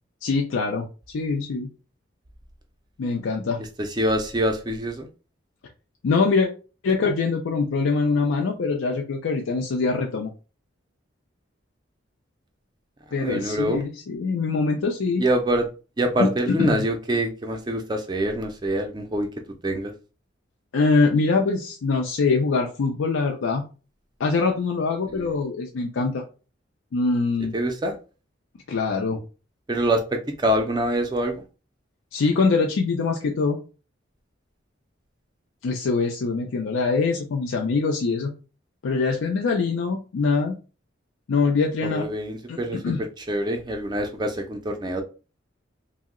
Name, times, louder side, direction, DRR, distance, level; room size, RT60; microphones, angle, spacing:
voice 1, 0.2-0.9 1.1-1.7 3.0-3.6 6.0-6.5 6.8-10.3 13.1-15.2 16.2-16.8 20.7-23.6 24.2-26.2 26.9-27.5 28.7-29.2 32.1-33.6 35.6-38.3 38.8-40.6 41.3-42.1 42.5-43.0, left 4 dB, 90° left, 1 dB, 0.4 m, -23 dB
voice 2, 3.8-5.1 13.2-13.8 15.2-15.7 16.0-19.3 19.6-19.9 25.1-25.3 27.5-28.0 29.7-31.4 41.8-42.8 43.2-45.0, right 1 dB, 20° right, 4 dB, 0.3 m, -25 dB
2.7 x 2.0 x 3.6 m, 0.34 s
head